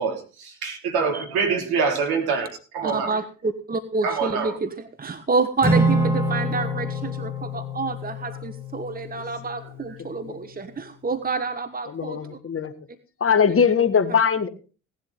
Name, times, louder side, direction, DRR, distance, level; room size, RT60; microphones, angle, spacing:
voice 1, 0.0-2.5 2.7-3.2 4.0-4.5, right 5 dB, 65° right, 3 dB, 3.6 m, -25 dB
voice 2, 2.8-12.4 14.1-14.2, right 4 dB, 20° right, 11 dB, 1.3 m, -28 dB
Acoustic guitar / Strum, 5.6-10.1, right 1 dB, 5° right, 4.0 m, -26 dB
voice 3, 11.9-12.7 13.2-14.5, left 6 dB, 35° left, 11 dB, 1.7 m, -20 dB
17.5 x 11.0 x 3.4 m, 0.35 s
figure-of-eight pair, 50°, 40 cm